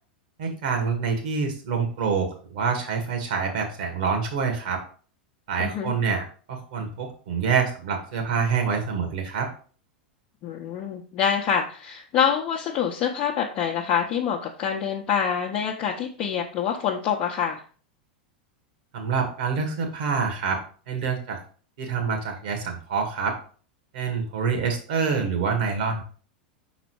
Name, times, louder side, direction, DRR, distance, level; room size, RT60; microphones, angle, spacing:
voice 1, 0.4-4.8 5.5-9.5 18.9-20.6 20.9-21.4 21.8-23.4 23.9-26.0, right 5 dB, 60° right, 3 dB, 2.0 m, -26 dB
voice 2, 5.6-5.9 10.4-17.6, left 8 dB, 35° left, -1 dB, 0.9 m, -26 dB
6.0 x 4.1 x 4.7 m, 0.41 s
figure-of-eight pair, 90°, 5 cm